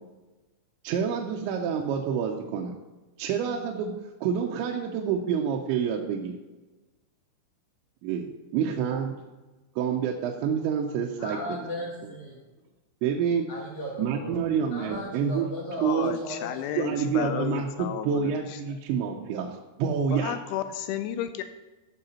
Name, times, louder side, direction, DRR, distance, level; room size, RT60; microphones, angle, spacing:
voice 1, 0.8-2.7 3.2-6.4 8.0-9.2 9.8-11.4 11.8-12.1 13.0-13.5 14.0-15.5 15.8-16.1 16.8-20.4, right 7 dB, 80° right, 0 dB, 2.9 m, -28 dB
voice 2, 11.2-12.4 13.5-14.4 14.7-16.8, equal, 65° left, -3 dB, 1.9 m, -36 dB
voice 3, 15.8-18.3 20.1-21.4, left 11 dB, 85° left, 9 dB, 2.9 m, -32 dB
14.5 x 5.9 x 4.2 m, 1.1 s
omnidirectional pair, 5.5 m